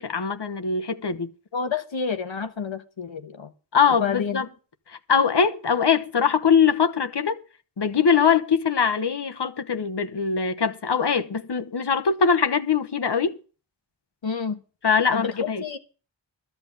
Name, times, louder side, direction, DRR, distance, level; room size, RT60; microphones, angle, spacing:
voice 1, 0.0-1.3 3.7-4.5 4.9-7.4 7.8-13.4 14.8-15.6, left 6 dB, 65° left, 1.1 m, -22 dB
voice 2, 1.5-3.5 4.0-4.4 14.2-14.6 15.1-15.8, left 6 dB, 85° left, 1.3 m, -29 dB
13.0 x 5.8 x 8.6 m
wide cardioid pair, 45°, 45 cm